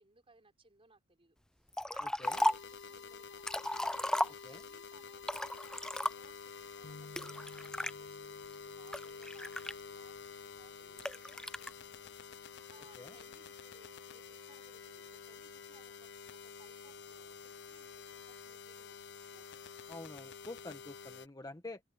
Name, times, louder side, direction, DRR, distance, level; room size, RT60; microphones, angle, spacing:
voice 1, 0.0-1.4 1.9-16.1 16.4-19.7, right 3 dB, 30° right, 5.3 m, -65 dB
Liquid, 1.7-2.8 3.2-4.8 5.2-6.5 7.2-7.9 8.5-10.2 11.0-11.7, left 1 dB, 5° left, 0.3 m, -35 dB
voice 2, 2.0-2.4 4.4-4.6 13.0-13.2 19.9-21.8, left 2 dB, 20° left, 1.2 m, -47 dB
sound 1, 2.2-21.3, left 5 dB, 60° left, 0.7 m, -49 dB
sound 2, 6.8-10.4, left 2 dB, 85° left, 1.3 m, -57 dB
head